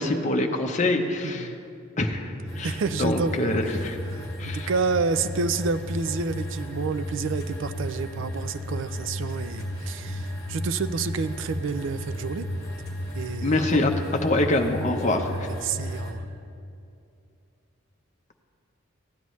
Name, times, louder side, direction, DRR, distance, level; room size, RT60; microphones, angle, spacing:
voice 1, 0.0-1.5 2.0-4.0 4.4-4.7 13.4-13.9 14.2-15.5, left 2 dB, 35° left, 4 dB, 0.7 m, -25 dB
voice 2, 1.2-1.6 2.6-3.5 4.1-12.5 13.1-13.8 15.5-16.2, right 4 dB, 60° right, 12 dB, 0.4 m, -29 dB
sound 1, 2.5-16.1, left 1 dB, 20° left, 2.1 m, -33 dB
15.5 x 9.5 x 3.1 m, 2.6 s
head